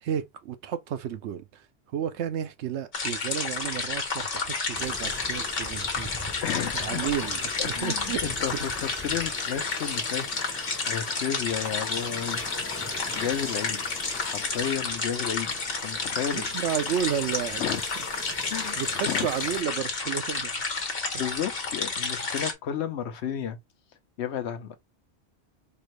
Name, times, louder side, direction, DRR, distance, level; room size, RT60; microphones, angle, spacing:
voice 1, 0.0-1.7 1.9-6.1 6.7-8.6 16.3-17.6 18.8-20.7 21.1-21.2, right 9 dB, 80° right, 0.9 m, -32 dB
sound 1, 2.9-22.5, left 4 dB, 60° left, 1.3 m, -31 dB
sound 2, 4.7-19.6, left 2 dB, 20° left, 0.5 m, -42 dB
voice 2, 6.4-7.1 7.6-10.3 10.9-12.7 13.1-13.9 14.2-16.5 17.6-17.8 18.5-19.3 21.2-23.6 24.2-24.7, left 8 dB, 75° left, 1.0 m, -32 dB
4.4 x 2.6 x 3.1 m
omnidirectional pair, 1.1 m